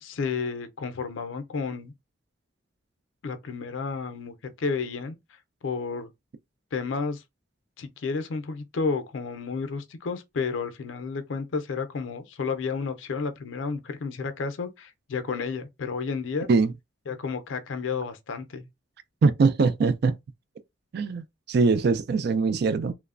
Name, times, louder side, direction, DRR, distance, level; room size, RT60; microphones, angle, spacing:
voice 1, 0.0-1.9 3.2-5.1 5.6-6.1 6.7-7.2 7.8-16.5 17.1-18.7, left 5 dB, 80° left, 0.5 m, -31 dB
voice 2, 19.2-20.1 20.9-22.9, right 4 dB, 55° right, 0.3 m, -22 dB
3.1 x 2.0 x 2.4 m
head